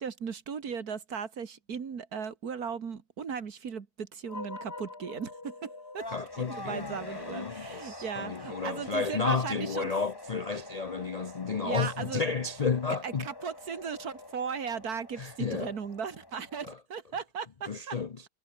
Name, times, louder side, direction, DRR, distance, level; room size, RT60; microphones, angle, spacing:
voice 1, 0.0-6.1 6.4-9.9 11.6-12.2 13.0-18.0, right 6 dB, 70° right, 2.2 m, -37 dB
sound 1, 4.2-14.8, left 3 dB, 40° left, 3.4 m, -48 dB
sound 2, 6.0-16.7, left 2 dB, 15° left, 1.8 m, -47 dB
voice 2, 6.1-13.3 15.2-15.7 16.6-16.8 17.7-18.3, left 4 dB, 55° left, 0.4 m, -32 dB
omnidirectional pair, 1.7 m